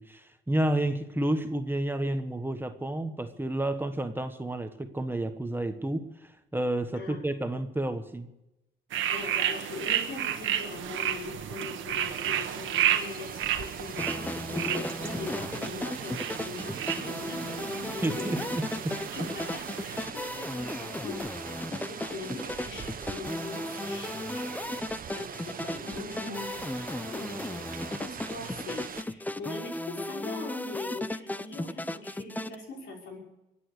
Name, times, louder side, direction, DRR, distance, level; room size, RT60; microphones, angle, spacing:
voice 1, 0.0-8.3 18.0-19.0, right 1 dB, 10° right, 7 dB, 1.3 m, -30 dB
sound 1, 8.9-20.1, right 10 dB, 75° right, 1.4 m, -32 dB
voice 2, 9.0-18.6 19.1-33.2, left 3 dB, 80° left, -1 dB, 5.6 m, -41 dB
Rain, 12.1-29.0, right 7 dB, 45° right, 0.9 m, -42 dB
sound 2, 14.0-32.5, left 1 dB, 10° left, 0.7 m, -35 dB
24.0 x 8.8 x 6.7 m, 0.92 s
cardioid pair, 90°, 20 cm